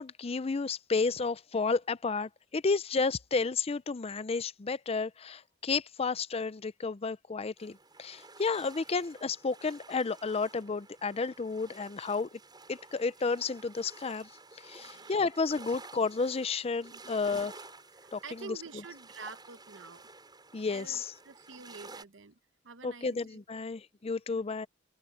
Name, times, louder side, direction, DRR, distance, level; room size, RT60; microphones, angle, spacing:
voice 1, 0.0-12.3 12.7-14.3 14.6-17.7 18.1-18.6 20.5-21.1 22.8-24.7, left 4 dB, 30° left, 0.5 m, -32 dB
sound 1, 7.6-22.0, right 3 dB, 25° right, 7.6 m, -52 dB
voice 2, 14.7-15.1 16.9-17.2 17.9-20.0 20.7-22.4 22.6-23.4 24.3-24.4, right 4 dB, 75° right, 1.0 m, -48 dB
open air
head